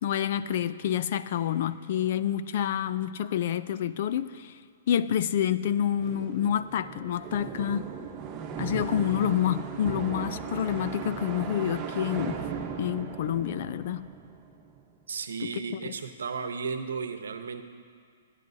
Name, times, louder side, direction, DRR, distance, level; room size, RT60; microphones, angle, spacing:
voice 1, 0.0-4.5 4.9-7.9 8.6-12.4 12.8-14.0 15.4-15.5 15.8-15.9, left 10 dB, 55° left, 14 dB, 0.5 m, -28 dB
sound 1, 6.0-14.8, right 6 dB, 25° right, 1.1 m, -37 dB
voice 2, 15.1-17.7, right 5 dB, 85° right, 8 dB, 0.9 m, -34 dB
26.5 x 9.8 x 2.8 m, 2.1 s
hypercardioid pair, 140°, 0 cm